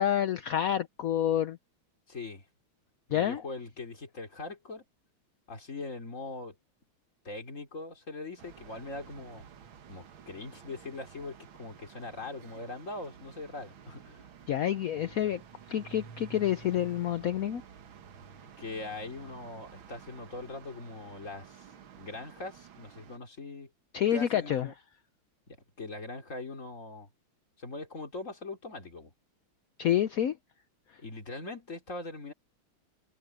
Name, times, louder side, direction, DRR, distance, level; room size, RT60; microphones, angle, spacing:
voice 1, 0.0-1.6 3.1-3.4 14.5-15.4 15.7-17.6 23.9-24.7 29.8-30.4, left 10 dB, 65° left, 0.8 m, -28 dB
voice 2, 2.1-2.4 3.1-4.8 5.5-6.6 7.3-9.4 9.9-14.3 18.4-21.7 21.9-23.7 24.1-24.7 25.5-27.1 27.6-29.1 31.0-32.3, left 2 dB, 35° left, 3.5 m, -41 dB
sound 1, 8.4-23.2, right 7 dB, 70° right, 2.1 m, -52 dB
omnidirectional pair, 2.3 m